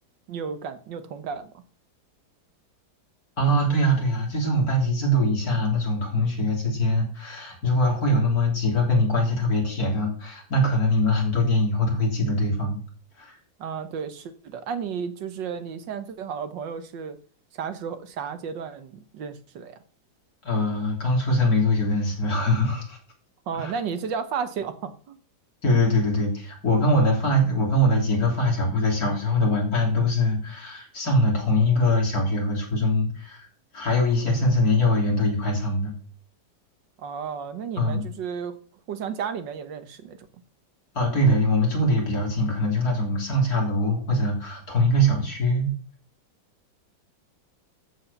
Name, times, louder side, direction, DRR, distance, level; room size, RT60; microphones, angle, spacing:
voice 1, 0.3-1.5 13.6-17.2 17.5-19.8 23.5-25.2 37.0-38.6 38.9-40.3, right 6 dB, 75° right, 10 dB, 1.7 m, -33 dB
voice 2, 3.4-12.8 13.2-13.4 20.4-23.0 23.5-23.7 25.6-33.5 33.7-35.9 37.8-38.0 40.9-45.7, left 1 dB, 55° left, 0 dB, 3.8 m, -22 dB
13.5 x 4.9 x 7.0 m, 0.43 s
omnidirectional pair, 2.0 m